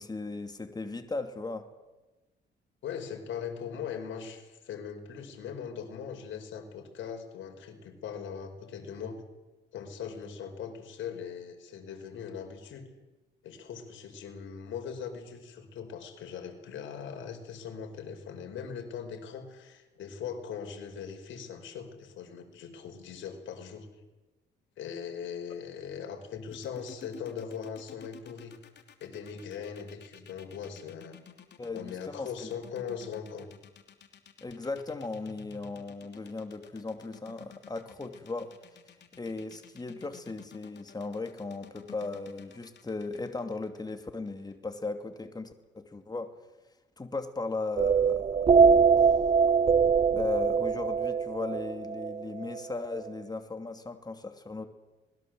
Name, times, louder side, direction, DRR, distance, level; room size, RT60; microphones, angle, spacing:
voice 1, 0.0-1.7 31.6-32.5 34.4-38.6 39.1-46.3 47.0-48.3 48.6-49.2 49.4-49.5 50.1-54.7, left 3 dB, 20° left, 7 dB, 2.7 m, -37 dB
voice 2, 2.8-9.2 9.7-12.9 13.4-23.9 24.8-28.6 29.0-31.2 31.7-33.5, left 7 dB, 75° left, 4 dB, 5.0 m, -40 dB
sound 1, 26.5-44.6, left 8 dB, 60° left, 3.0 m, -52 dB
sound 2, 47.8-52.6, right 6 dB, 30° right, 0.7 m, -23 dB
25.5 x 20.5 x 7.8 m, 1.1 s
cardioid pair, 90°, 20 cm